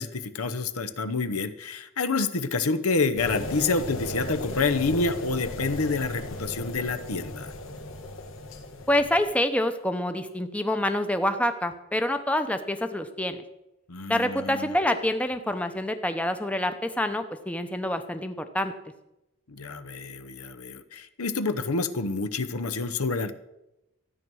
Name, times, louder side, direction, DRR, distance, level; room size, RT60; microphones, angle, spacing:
voice 1, 0.0-7.5 13.9-14.7 19.5-23.3, left 3 dB, 85° left, 12 dB, 0.9 m, -28 dB
sound 1, 3.2-9.3, left 2 dB, 65° left, 1.3 m, -36 dB
voice 2, 8.9-13.4 14.1-18.7, left 1 dB, 5° left, 8 dB, 0.7 m, -27 dB
13.5 x 9.1 x 6.3 m, 0.92 s
head